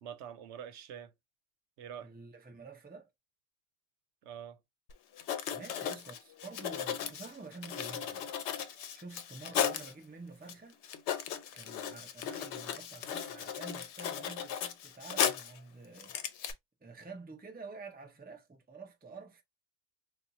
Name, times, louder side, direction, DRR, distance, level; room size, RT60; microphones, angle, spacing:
voice 1, 0.0-1.1 1.8-2.1 4.2-4.6, right 9 dB, 85° right, 0.9 m, -45 dB
voice 2, 2.0-3.1 5.5-8.3 8.9-10.8 11.5-16.2 16.8-19.4, right 3 dB, 15° right, 0.4 m, -49 dB
Writing, 4.9-5.0 5.2-9.9 10.5-10.6 10.8-15.6 16.0-16.5, left 9 dB, 80° left, 0.9 m, -36 dB
4.0 x 2.4 x 2.6 m
omnidirectional pair, 1.1 m